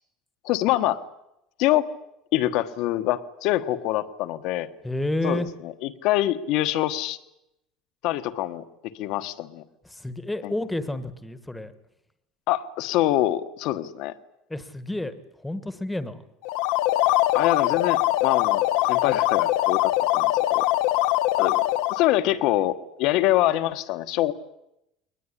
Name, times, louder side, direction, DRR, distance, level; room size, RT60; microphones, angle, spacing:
voice 1, 0.4-1.0 1.6-1.9 2.3-4.7 5.2-7.2 8.0-9.6 10.4-10.5 12.5-14.1 17.3-18.6 18.9-20.6 21.4-21.6 21.9-24.3, left 14 dB, 55° left, 10 dB, 1.3 m, -25 dB
voice 2, 4.8-5.5 9.8-11.7 14.5-15.1 15.4-16.2, left 1 dB, 5° left, 13 dB, 1.3 m, -30 dB
sound 1, 16.4-22.1, left 17 dB, 75° left, 1.0 m, -22 dB
22.5 x 20.0 x 10.0 m, 0.87 s
cardioid pair, 170°, 0 cm